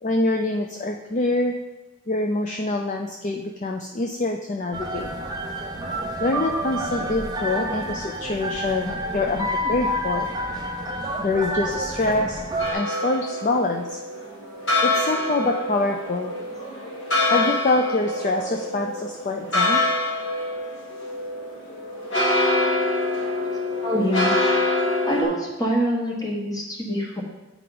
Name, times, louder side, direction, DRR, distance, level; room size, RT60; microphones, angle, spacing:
voice 1, 0.0-1.5 2.1-5.1 6.2-10.3 11.2-12.4 12.7-14.0 14.8-16.3 17.3-19.8, left 2 dB, 35° left, 3 dB, 0.4 m, -25 dB
sound 1, 4.7-12.7, equal, 20° right, 0.6 m, -29 dB
sound 2, 12.6-25.2, left 2 dB, 55° left, 2.0 m, -25 dB
voice 2, 23.8-24.5 25.0-27.2, equal, 15° left, -1 dB, 1.2 m, -25 dB
9.2 x 4.7 x 3.9 m, 1.1 s
head